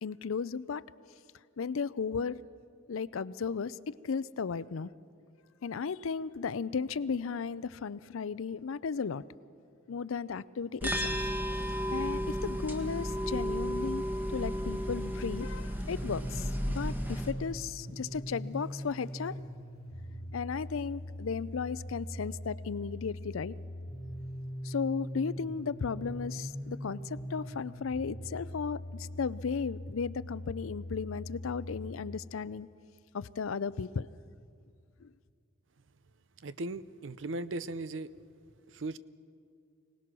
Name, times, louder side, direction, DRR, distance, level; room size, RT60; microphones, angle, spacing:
voice 1, 0.0-0.8 1.6-2.4 2.9-4.9 5.6-9.2 9.9-19.4 20.3-23.5 24.6-32.7 33.1-34.1 35.0-35.1, left 5 dB, 90° left, 18 dB, 0.5 m, -35 dB
sound 1, 10.8-17.3, equal, 10° right, 1.3 m, -33 dB
sound 2, 15.9-31.9, equal, 45° right, 2.6 m, -41 dB
voice 2, 36.4-38.1 38.7-39.0, right 2 dB, 70° right, 16 dB, 0.6 m, -37 dB
24.5 x 18.5 x 6.1 m, 2.3 s
head